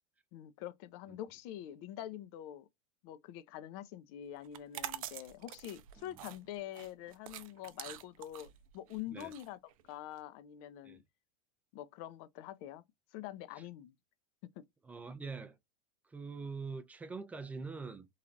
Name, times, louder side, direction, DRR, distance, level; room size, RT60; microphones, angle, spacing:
voice 1, 0.3-2.7 3.0-9.6 9.9-11.0 11.7-12.8 13.1-13.9 14.6-14.7, left 12 dB, 55° left, 0.5 m, -45 dB
sound 1, 4.4-10.2, right 12 dB, 80° right, 0.5 m, -46 dB
voice 2, 14.8-15.6 16.0-18.1, right 4 dB, 10° right, 0.4 m, -44 dB
3.2 x 2.3 x 2.5 m
supercardioid pair, 120°, 17 cm